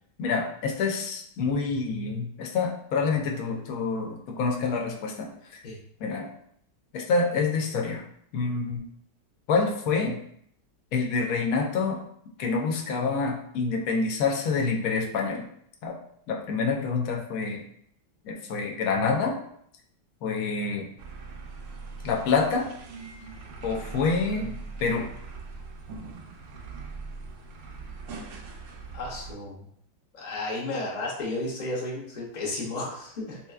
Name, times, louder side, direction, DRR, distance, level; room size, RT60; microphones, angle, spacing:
voice 1, 0.2-5.3 6.0-6.3 6.9-8.0 8.3-8.9 9.5-10.2 10.9-12.0 12.4-15.4 15.8-15.9 16.3-17.6 18.2-19.4 20.2-20.9 22.0-22.7 23.6-25.1, left 4 dB, 65° left, 1 dB, 0.9 m, -27 dB
sound 1, 21.0-29.3, right 4 dB, 80° right, 0.7 m, -41 dB
voice 2, 28.9-29.6 30.1-33.4, left 2 dB, 40° left, -3 dB, 0.6 m, -33 dB
3.8 x 2.8 x 2.4 m, 0.67 s
omnidirectional pair, 1.9 m